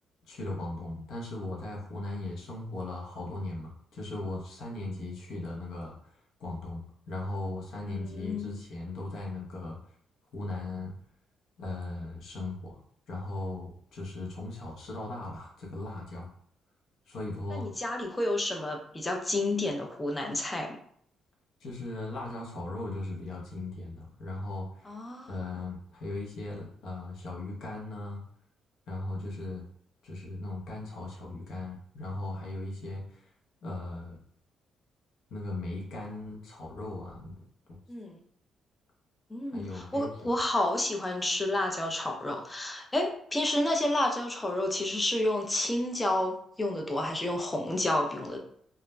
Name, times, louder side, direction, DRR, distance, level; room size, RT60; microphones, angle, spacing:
voice 1, 0.3-6.1 6.4-9.8 10.3-10.9 11.6-12.8 13.1-16.3 17.1-17.7 21.6-24.9 25.3-28.2 28.9-29.6 30.0-33.3 33.6-34.2 35.3-37.4 37.7-37.8 39.5-40.3, left 2 dB, 70° left, -2 dB, 0.8 m, -38 dB
voice 2, 7.8-8.5 17.5-20.8 24.9-25.3 37.9-38.2 39.3-48.5, left 1 dB, 20° left, 2 dB, 0.4 m, -30 dB
2.4 x 2.0 x 3.1 m, 0.64 s
cardioid pair, 90°, 0 cm